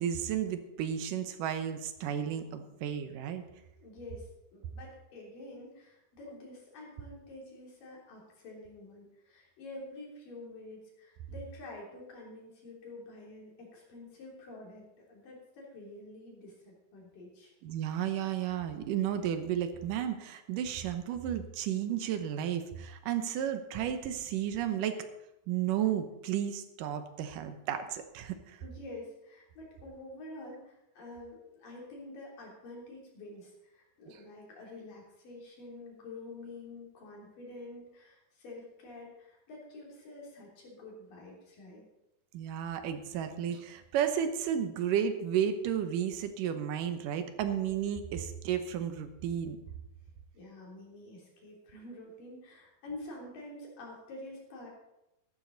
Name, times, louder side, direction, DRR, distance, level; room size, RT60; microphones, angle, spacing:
voice 1, 0.0-3.5 17.6-25.0 25.5-28.6 34.1-34.2 42.3-49.6, right 9 dB, 75° right, 9 dB, 2.5 m, -33 dB
voice 2, 3.8-17.5 28.6-41.8 50.3-54.7, left 2 dB, 75° left, -2 dB, 5.0 m, -48 dB
14.0 x 12.5 x 4.0 m, 0.90 s
omnidirectional pair, 3.9 m